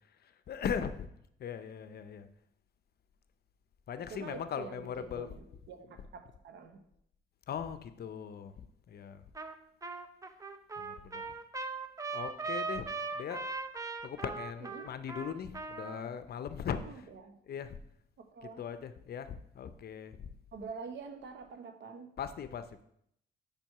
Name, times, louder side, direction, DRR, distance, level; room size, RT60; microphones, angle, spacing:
voice 1, 0.2-1.1 1.4-2.3 3.9-5.3 7.5-8.5 8.9-9.2 10.8-11.3 12.1-12.9 13.1-13.5 14.0-16.8 17.5-17.8 18.4-20.3 22.2-22.8, left 7 dB, 55° left, 11 dB, 0.6 m, -39 dB
voice 2, 4.1-6.8 14.7-14.9 16.8-17.4 18.2-18.7 20.5-22.1, right 5 dB, 65° right, 6 dB, 1.0 m, -46 dB
Trumpet, 9.4-9.6 9.8-16.0, right 4 dB, 15° right, 0.6 m, -39 dB
5.2 x 4.5 x 5.5 m, 0.73 s
cardioid pair, 90°, 20 cm